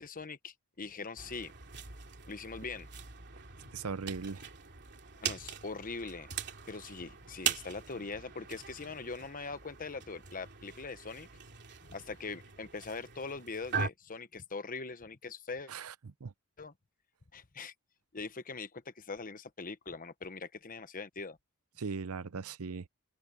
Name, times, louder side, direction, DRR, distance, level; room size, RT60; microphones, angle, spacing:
voice 1, 0.0-1.5 2.3-2.9 5.2-6.3 6.7-11.3 11.9-15.7 16.6-16.7 17.3-17.7 18.1-21.4, left 4 dB, 40° left, 1.1 m, -42 dB
sound 1, 1.2-13.9, right 6 dB, 55° right, 2.9 m, -41 dB
voice 2, 3.7-4.4 15.7-16.3 21.8-22.9, right 5 dB, 75° right, 0.7 m, -39 dB
open air
head